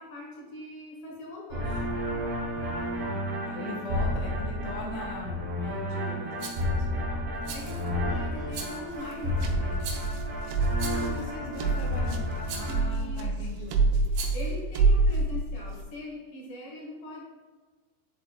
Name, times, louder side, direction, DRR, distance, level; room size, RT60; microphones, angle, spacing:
voice 1, 0.0-1.9 3.5-3.7 7.5-9.9 11.1-11.4 12.7-17.2, left 1 dB, 50° left, -3 dB, 1.8 m, -42 dB
sound 1, 1.5-12.8, left 1 dB, 55° right, 2.2 m, -31 dB
voice 2, 2.5-8.3 10.8-13.8, left 3 dB, 80° left, -1 dB, 1.8 m, -41 dB
Rattle, 6.4-6.7 7.4-7.9 8.5-8.9 9.8-10.2 10.8-11.2 12.5-12.8 14.1-14.5, right 5 dB, 75° right, 2.6 m, -39 dB
sound 2, 8.9-15.8, right 3 dB, 90° right, 2.8 m, -27 dB
10.5 x 4.3 x 2.2 m, 1.3 s
omnidirectional pair, 4.6 m